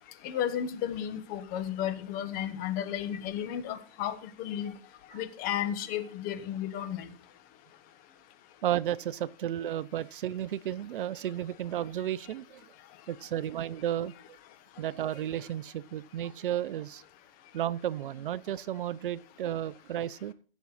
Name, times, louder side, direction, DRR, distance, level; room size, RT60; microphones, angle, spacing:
voice 1, 0.2-4.7 5.1-7.1, left 10 dB, 30° left, 1.4 m, -33 dB
voice 2, 8.6-12.6 13.1-14.1 14.8-17.0 17.5-20.3, right 11 dB, 60° right, 0.6 m, -33 dB
15.5 x 7.2 x 4.1 m
hypercardioid pair, 140°, 30 cm